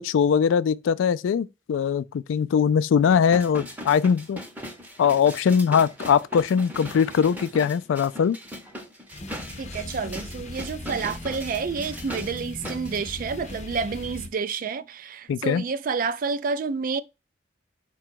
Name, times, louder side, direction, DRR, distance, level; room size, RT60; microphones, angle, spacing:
voice 1, 0.0-4.4 5.0-8.4 15.3-15.6, left 7 dB, 80° left, 0.3 m, -21 dB
sound 1, 3.1-13.0 13.5-13.6, equal, 10° right, 0.7 m, -39 dB
sound 2, 9.1-14.3, left 2 dB, 40° left, 0.6 m, -39 dB
voice 2, 9.6-17.0, right 5 dB, 45° right, 0.3 m, -29 dB
4.9 x 2.3 x 4.5 m
head